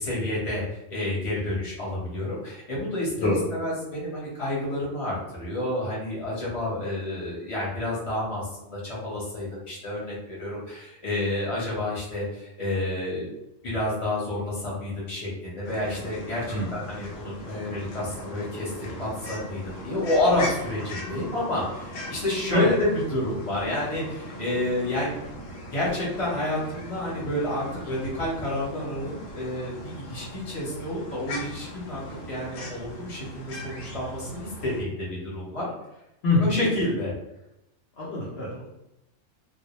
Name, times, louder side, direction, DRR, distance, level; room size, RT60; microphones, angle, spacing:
voice 1, 0.0-13.3 13.6-25.1 25.7-32.0 32.3-35.7 36.4-37.1, left 1 dB, 30° left, -6 dB, 0.8 m, -29 dB
sound 1, 15.6-34.8, equal, 90° left, 1.0 m, -39 dB
voice 2, 38.0-38.7, left 2 dB, 60° left, -6 dB, 0.7 m, -25 dB
2.2 x 2.0 x 3.0 m, 0.89 s
omnidirectional pair, 1.3 m